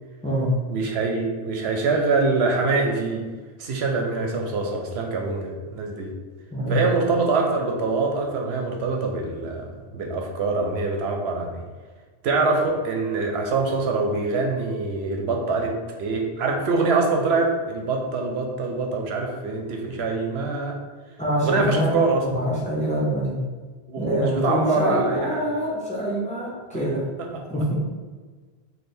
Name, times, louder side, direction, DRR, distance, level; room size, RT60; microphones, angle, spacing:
voice 1, 0.7-3.2 3.6-6.1 6.7-11.6 12.2-15.7 16.0-20.8 21.4-22.2 23.9-25.4 27.3-27.4, right 3 dB, 75° right, 1 dB, 0.8 m, -24 dB
voice 2, 21.2-21.9 22.2-23.4 24.0-27.0 27.5-27.7, equal, 10° left, -7 dB, 0.7 m, -25 dB
3.3 x 2.2 x 4.3 m, 1.4 s
omnidirectional pair, 1.1 m